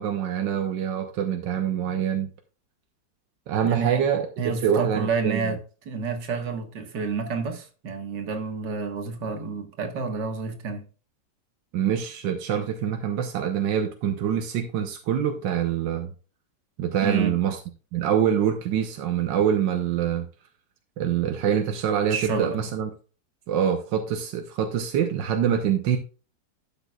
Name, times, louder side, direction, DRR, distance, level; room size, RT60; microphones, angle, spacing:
voice 1, 0.0-2.3 3.5-5.5 11.7-16.1 16.8-17.6 17.9-20.3 21.0-22.9 23.5-26.0, right 8 dB, 90° right, 1.5 m, -25 dB
voice 2, 3.6-4.0 4.4-5.6 5.9-10.9 17.0-17.4 22.1-22.6, right 5 dB, 75° right, 2.1 m, -29 dB
12.0 x 7.8 x 2.3 m
omnidirectional pair, 1.9 m